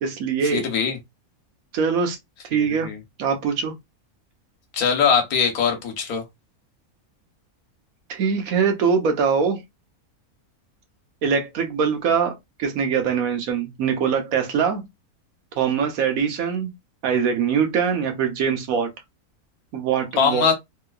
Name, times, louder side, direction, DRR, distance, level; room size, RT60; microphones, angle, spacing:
voice 1, 0.0-0.6 1.7-2.2 2.5-2.9 3.2-3.7 8.1-9.6 11.2-14.8 15.6-16.7 17.0-18.9 19.7-20.5, right 6 dB, 75° right, 1.3 m, -22 dB
voice 2, 0.5-1.0 2.5-3.0 4.7-6.2 20.2-20.5, left 6 dB, 85° left, 1.5 m, -21 dB
3.3 x 2.8 x 2.3 m
omnidirectional pair, 1.5 m